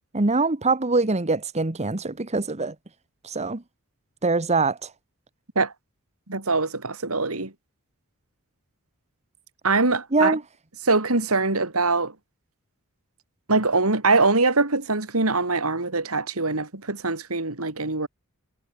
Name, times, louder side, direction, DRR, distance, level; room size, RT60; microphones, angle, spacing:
voice 1, 0.1-2.7 3.2-3.6 4.2-4.9 10.1-10.4, right 3 dB, 30° right, 1.2 m, -23 dB
voice 2, 6.3-7.5 9.6-10.3 10.8-12.1 13.5-18.1, right 3 dB, 90° right, 3.2 m, -23 dB
head